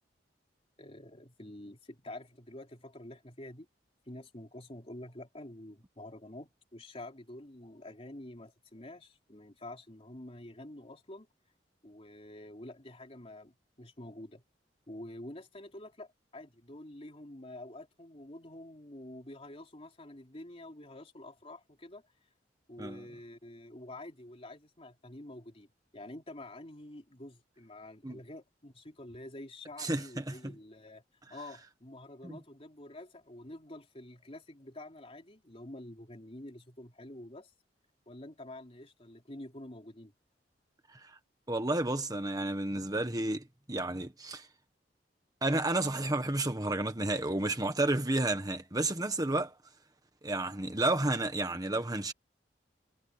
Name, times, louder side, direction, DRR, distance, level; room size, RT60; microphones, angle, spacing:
voice 1, 0.8-3.7 4.0-11.3 11.8-14.4 14.9-22.0 22.7-25.7 25.9-31.0 31.3-37.5 38.1-40.1, left 1 dB, 35° left, 3.3 m, -48 dB
voice 2, 29.8-30.5 32.2-32.4 40.9-41.0 41.5-44.5 45.4-49.5 50.2-52.1, right 2 dB, 20° right, 1.4 m, -31 dB
head